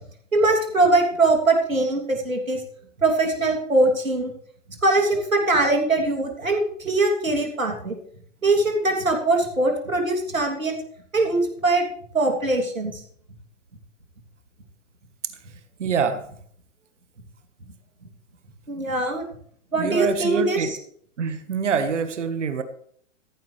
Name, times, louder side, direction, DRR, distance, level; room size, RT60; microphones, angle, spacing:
voice 1, 0.3-2.6 3.0-4.3 4.8-8.0 8.4-10.8 11.1-11.8 12.1-13.0 18.7-19.3 19.7-20.8, right 2 dB, 80° right, 1 dB, 3.2 m, -22 dB
voice 2, 15.8-16.3 19.8-20.7 21.2-22.6, right 6 dB, 65° right, 10 dB, 1.6 m, -25 dB
15.5 x 14.5 x 3.4 m, 0.62 s
figure-of-eight pair, 110°, 40 cm